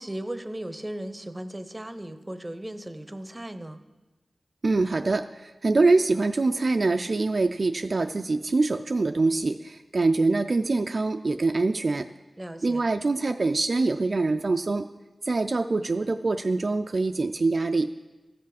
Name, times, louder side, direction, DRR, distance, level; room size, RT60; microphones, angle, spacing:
voice 1, 0.0-3.8 12.4-12.8, right 1 dB, 20° right, 10 dB, 0.7 m, -36 dB
voice 2, 4.6-12.1 12.6-14.9 15.2-17.9, right 3 dB, 60° right, 7 dB, 0.3 m, -24 dB
13.5 x 5.7 x 4.9 m, 1.1 s
wide cardioid pair, 55°, 0 cm